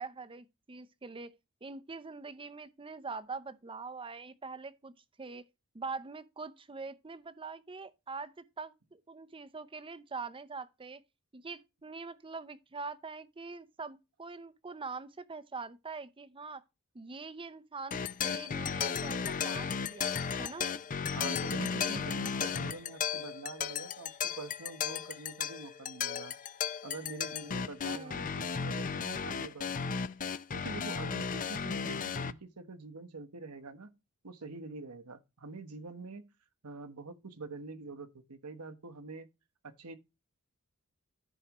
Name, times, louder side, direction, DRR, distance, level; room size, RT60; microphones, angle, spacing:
voice 1, 0.0-1.3 1.6-4.9 5.2-5.4 5.7-11.0 11.3-16.6 16.9-20.1 20.4-20.7 27.9-28.3, right 4 dB, 25° right, 0.6 m, -43 dB
sound 1, 17.9-32.3, left 6 dB, 40° left, 0.5 m, -35 dB
voice 2, 21.1-26.3 26.8-30.0 30.5-33.9 34.2-36.2 36.6-39.3 39.6-40.0, right 3 dB, 85° right, 1.1 m, -45 dB
14.0 x 4.7 x 3.0 m
head